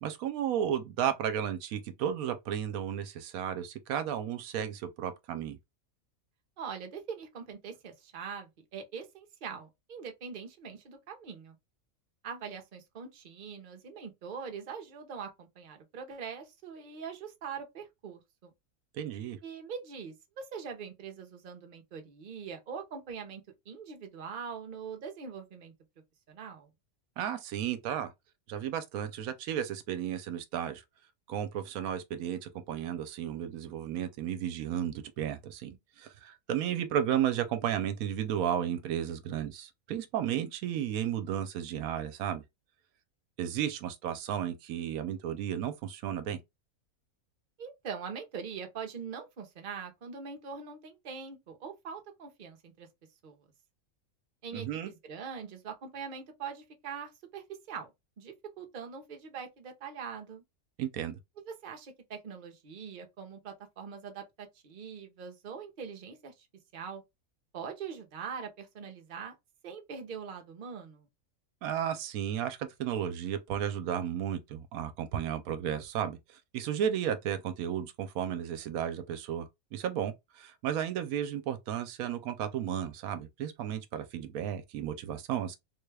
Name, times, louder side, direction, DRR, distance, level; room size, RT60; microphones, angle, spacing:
voice 1, 0.0-5.6 18.9-19.4 27.2-28.1 28.5-30.8 31.3-42.4 43.4-46.4 54.5-54.9 60.8-61.2 71.6-85.6, right 9 dB, 85° right, 1.1 m, -33 dB
voice 2, 6.6-11.6 12.2-18.5 19.4-25.7 26.3-26.7 47.6-52.9 53.2-53.4 54.4-60.4 61.4-66.5 66.7-67.0 67.5-69.4 69.6-71.1, right 6 dB, 45° right, 0.8 m, -43 dB
3.7 x 2.3 x 3.3 m
omnidirectional pair, 1.5 m